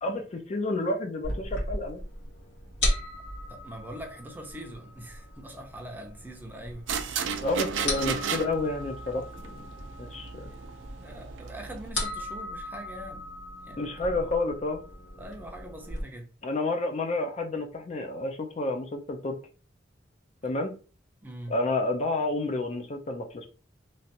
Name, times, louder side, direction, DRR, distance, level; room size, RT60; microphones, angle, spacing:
voice 1, 0.0-2.0 7.4-9.7 10.0-10.5 13.8-14.8 16.4-19.4 20.4-20.7 21.5-23.5, left 2 dB, 35° left, 0.4 m, -30 dB
sound 1, 1.2-16.0, left 1 dB, 85° left, 1.7 m, -37 dB
voice 2, 3.5-6.9 11.0-13.2 13.7-14.2 15.2-16.3 21.2-21.6, right 1 dB, 10° right, 0.6 m, -43 dB
sound 2, 6.9-11.9, right 6 dB, 90° right, 0.4 m, -34 dB
3.2 x 2.4 x 2.8 m
head